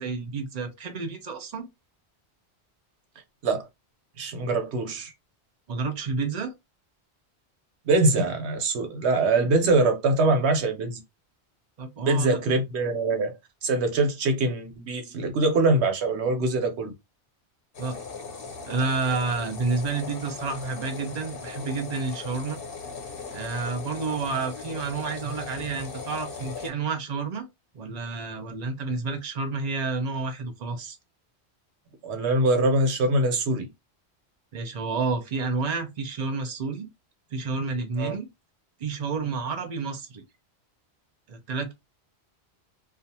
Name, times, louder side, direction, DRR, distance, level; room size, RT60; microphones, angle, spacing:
voice 1, 0.0-1.7 5.7-6.5 11.8-12.4 17.8-18.0 18.6-22.6 23.3-27.5 27.7-31.0 34.5-36.9 37.3-38.3 38.8-40.2 41.3-41.7, right 4 dB, 45° right, 0.6 m, -30 dB
voice 2, 4.2-5.1 7.9-11.0 12.0-16.9 32.0-33.7 38.0-38.1, right 2 dB, 80° right, 1.0 m, -23 dB
sound 1, 17.7-26.7, left 4 dB, 60° left, 0.9 m, -38 dB
2.4 x 2.4 x 2.7 m
omnidirectional pair, 1.1 m